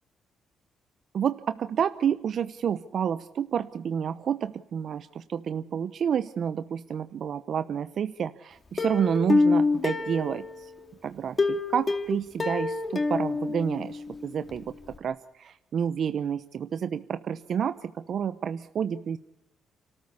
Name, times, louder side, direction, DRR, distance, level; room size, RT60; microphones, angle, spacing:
voice 1, 1.1-10.7 11.0-19.2, right 8 dB, 60° right, 12 dB, 0.9 m, -29 dB
Plucked string instrument, 8.8-10.8 11.4-14.2 14.5-14.6 14.9-15.0, left 3 dB, 30° left, 2.5 m, -26 dB
29.5 x 13.5 x 8.3 m, 0.90 s
cardioid pair, 90°, 0 cm